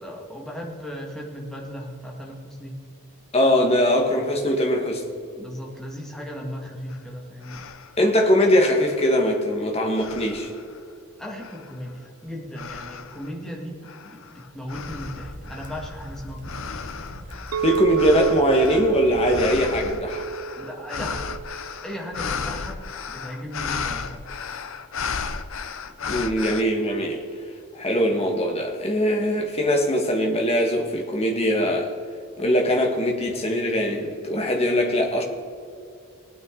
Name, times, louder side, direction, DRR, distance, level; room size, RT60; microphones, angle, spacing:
voice 1, 0.0-2.7 5.4-7.6 11.2-16.6 20.6-21.2 21.8-22.8 23.1-24.2, equal, ahead, -2 dB, 1.9 m, -36 dB
voice 2, 3.3-5.0 8.0-10.5 17.6-20.3 26.1-27.2 27.7-31.9 32.4-35.2, equal, 25° left, 2 dB, 1.5 m, -21 dB
sound 1, 6.9-7.0 7.4-8.0 8.6-9.5 9.9-10.8 11.4-11.9 12.6-13.3 13.8-26.6, left 5 dB, 60° left, 0.6 m, -34 dB
sound 2, 14.9-20.0, equal, 35° right, 1.5 m, -40 dB
Chink clink, 17.5-21.8, right 7 dB, 80° right, 0.4 m, -28 dB
18.5 x 9.4 x 3.8 m, 2.4 s
head